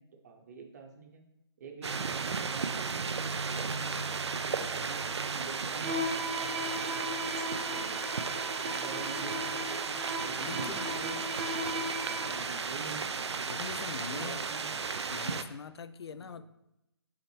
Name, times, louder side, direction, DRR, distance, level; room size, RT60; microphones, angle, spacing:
voice 1, 0.2-1.2 1.6-4.1 4.4-6.1 6.9-7.2 7.6-8.0 8.6-11.3 11.7-13.1 13.9-14.8 16.2-16.4, right 4 dB, 35° right, 4 dB, 0.9 m, -46 dB
sound 1, 1.8-15.4, right 5 dB, 75° right, 0.5 m, -34 dB
Bowed string instrument, 5.8-12.5, equal, 15° right, 0.4 m, -37 dB
voice 2, 10.4-10.9 13.5-14.4 15.1-16.4, left 6 dB, 65° left, 13 dB, 0.4 m, -42 dB
5.8 x 5.7 x 3.2 m, 0.88 s
figure-of-eight pair, 150°, 14 cm